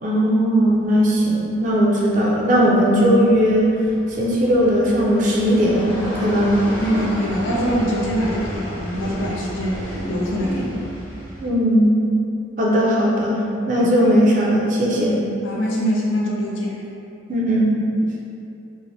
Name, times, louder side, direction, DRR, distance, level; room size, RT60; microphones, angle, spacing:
voice 1, 0.0-3.8 4.2-6.5 11.4-12.0 12.6-15.2 17.3-17.8, equal, 40° right, -4 dB, 0.4 m, -18 dB
sound 1, 0.6-11.5, equal, 15° left, 0.7 m, -33 dB
voice 2, 6.8-10.8 13.8-14.1 14.4-14.6 15.4-16.8, equal, 80° left, -4 dB, 0.5 m, -24 dB
2.6 x 2.1 x 3.1 m, 2.7 s
head